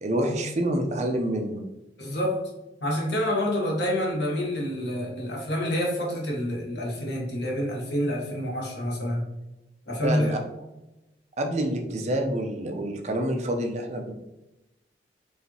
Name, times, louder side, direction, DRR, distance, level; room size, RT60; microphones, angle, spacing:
voice 1, 0.0-1.6 10.0-10.4 11.4-14.1, right 1 dB, 40° right, 3 dB, 0.5 m, -27 dB
voice 2, 2.0-2.4 2.8-9.2 9.9-10.3, equal, 75° left, -2 dB, 1.2 m, -27 dB
4.8 x 2.7 x 2.8 m, 0.97 s
head